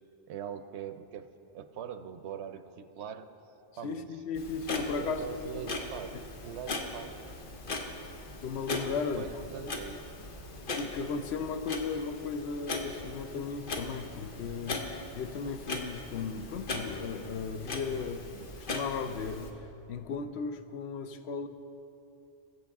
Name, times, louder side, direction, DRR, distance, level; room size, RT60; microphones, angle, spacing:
voice 1, 0.3-3.3 3.8-4.1 4.7-6.2 6.4-7.2 9.0-10.0, right 8 dB, 90° right, 11 dB, 0.9 m, -42 dB
voice 2, 3.8-5.7 8.4-9.7 10.7-19.6 19.9-21.5, left 5 dB, 80° left, 9 dB, 0.9 m, -36 dB
Clock, 4.4-19.5, left 2 dB, 55° left, 1.1 m, -39 dB
20.0 x 7.9 x 3.5 m, 2.9 s
omnidirectional pair, 1.1 m